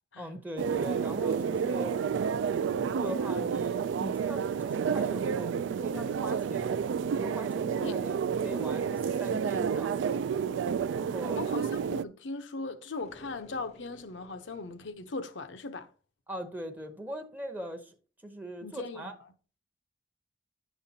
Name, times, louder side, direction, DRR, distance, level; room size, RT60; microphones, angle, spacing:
voice 1, 0.2-2.0 2.7-6.8 7.1-10.2 10.9-11.4 16.3-17.9 18.2-19.1, equal, 10° right, 0.7 m, -41 dB
sound 1, 0.6-12.0, right 7 dB, 80° right, 0.3 m, -30 dB
voice 2, 11.3-15.9 18.6-19.2, left 3 dB, 80° left, 0.7 m, -39 dB
sound 2, 13.0-15.3, left 1 dB, 35° left, 0.5 m, -54 dB
10.5 x 7.0 x 2.8 m
head